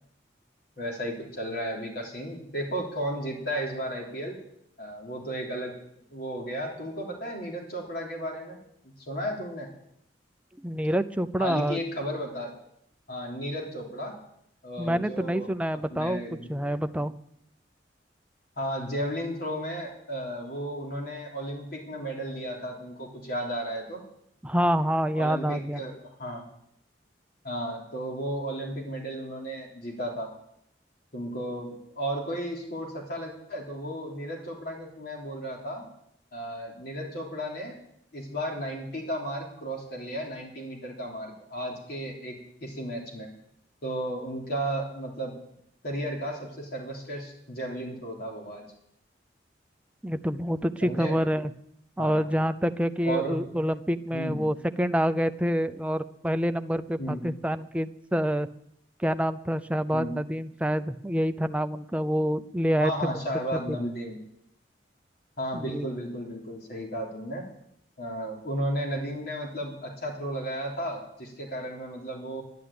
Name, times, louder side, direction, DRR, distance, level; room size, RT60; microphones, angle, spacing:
voice 1, 0.8-4.4 4.8-5.8 6.1-8.6 8.8-9.7 11.4-12.6 13.1-14.2 14.6-16.5 18.6-24.0 25.2-26.5 27.4-30.3 31.1-35.9 36.3-37.8 38.1-43.3 43.8-45.4 45.8-48.6 50.8-51.2 52.0-52.3 53.0-53.4 54.1-54.4 57.0-57.2 59.9-60.1 62.8-64.2 65.4-67.4 68.0-72.4, equal, 60° left, 0 dB, 3.4 m, -34 dB
voice 2, 10.6-11.8 14.8-16.2 16.5-17.1 24.4-25.8 50.0-51.5 52.0-58.5 59.0-63.2 63.5-63.8 65.5-65.9, equal, 5° right, 9 dB, 0.5 m, -27 dB
11.5 x 11.0 x 8.7 m, 0.74 s
head